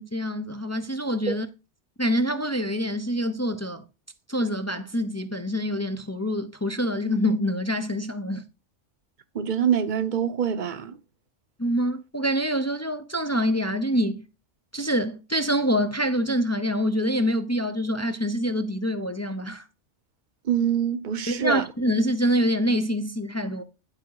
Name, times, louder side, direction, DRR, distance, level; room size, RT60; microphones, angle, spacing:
voice 1, 0.0-1.5 2.0-3.8 4.3-8.4 11.6-14.2 14.7-19.7 21.3-23.6, equal, 15° left, 0.7 m, -26 dB
voice 2, 9.3-11.0 20.4-21.6, right 8 dB, 45° right, 1.0 m, -25 dB
10.5 x 5.0 x 4.8 m
omnidirectional pair, 1.2 m